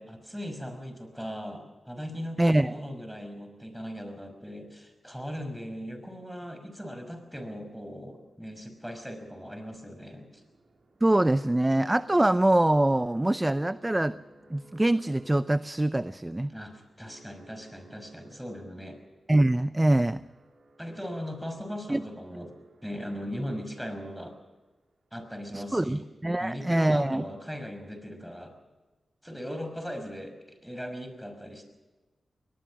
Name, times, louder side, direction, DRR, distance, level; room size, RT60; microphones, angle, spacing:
voice 1, 0.0-10.4 16.5-19.0 20.8-24.4 25.1-26.1 26.4-28.6 29.2-31.6, equal, ahead, 7 dB, 5.6 m, -39 dB
voice 2, 2.4-2.8 11.0-14.2 14.5-16.5 19.3-20.2 21.9-22.0 25.5-27.2, right 1 dB, 15° right, 14 dB, 0.6 m, -24 dB
sound 1, 8.2-24.4, right 2 dB, 65° right, 3.9 m, -56 dB
22.5 x 19.5 x 6.3 m, 1.2 s
cardioid pair, 65°, 0 cm